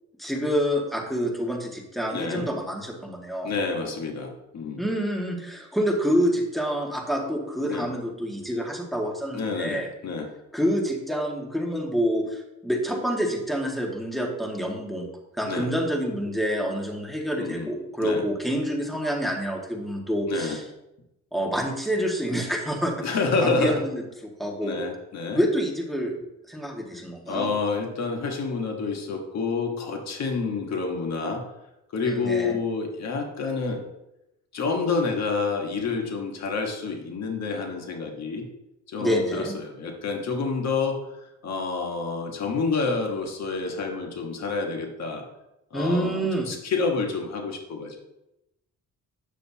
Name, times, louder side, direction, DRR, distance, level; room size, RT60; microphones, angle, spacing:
voice 1, 0.2-3.5 4.8-9.9 10.5-15.1 15.4-20.6 21.3-22.9 23.4-24.8 25.3-26.1 26.5-27.5 32.1-32.6 39.0-39.5 45.7-46.5, equal, ahead, -1 dB, 1.9 m, -27 dB
voice 2, 2.1-2.4 3.4-4.8 7.7-7.9 9.3-10.3 15.5-15.7 17.4-17.7 18.0-18.2 20.3-20.6 23.0-23.8 24.6-25.4 27.3-31.4 31.9-33.8 34.5-38.4 38.9-45.2 45.7-48.0, left 4 dB, 60° left, 2 dB, 1.4 m, -28 dB
9.0 x 6.8 x 2.8 m, 0.89 s
cardioid pair, 90°, 30 cm